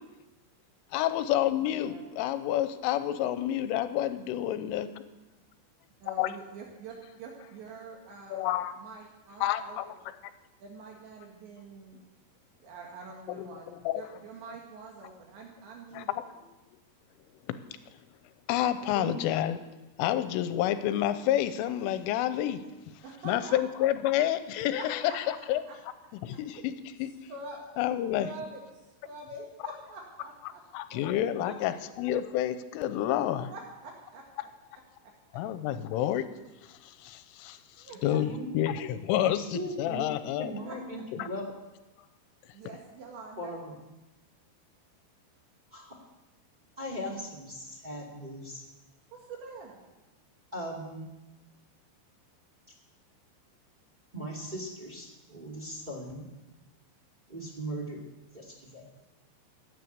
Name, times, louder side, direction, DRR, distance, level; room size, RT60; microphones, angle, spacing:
voice 1, 0.9-4.9 6.2-6.3 8.3-8.7 9.4-9.9 13.3-14.0 15.9-16.3 18.5-19.6 20.0-22.7 23.2-25.6 26.1-26.7 27.0-27.1 27.8-28.3 30.7-33.5 35.3-36.3 36.7-40.5 41.2-41.3, left 12 dB, 90° left, 12 dB, 3.3 m, -29 dB
voice 2, 1.6-2.0 6.0-9.8 10.6-12.0 12.6-13.7 13.9-16.1 23.0-23.6 24.8-25.2 25.7-25.8 26.6-26.7 27.3-27.6 28.2-30.6 30.9-31.0 31.4-31.6 33.5-34.5 35.0-35.1 37.8-38.0 40.7-40.8 42.5-43.5 49.1-49.8, right 3 dB, 70° right, 0 dB, 4.0 m, -45 dB
voice 3, 39.4-40.1 40.4-41.4 43.4-43.8 45.7-46.0 46.8-48.6 50.5-51.1 54.1-56.3 57.3-58.0 58.3-58.8, equal, 20° right, -1 dB, 1.2 m, -38 dB
16.5 x 10.5 x 8.1 m, 1.1 s
omnidirectional pair, 5.7 m